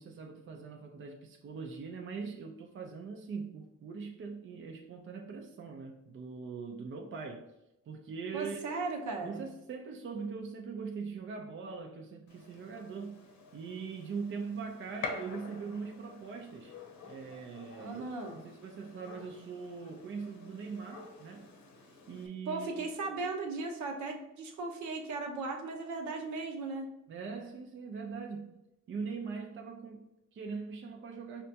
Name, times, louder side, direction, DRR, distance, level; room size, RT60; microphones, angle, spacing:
voice 1, 0.0-7.5 7.9-8.7 9.2-13.2 13.5-16.8 17.0-21.5 22.1-22.9 27.1-28.5 28.9-31.4, right 5 dB, 40° right, 0.5 m, -42 dB
voice 2, 8.3-9.4 17.8-18.4 22.5-26.9, right 3 dB, 70° right, 0.8 m, -37 dB
Gunshot gunfire, 12.3-22.3, left 4 dB, 70° left, 0.8 m, -48 dB
4.9 x 2.2 x 2.7 m
cardioid pair, 90°, 30 cm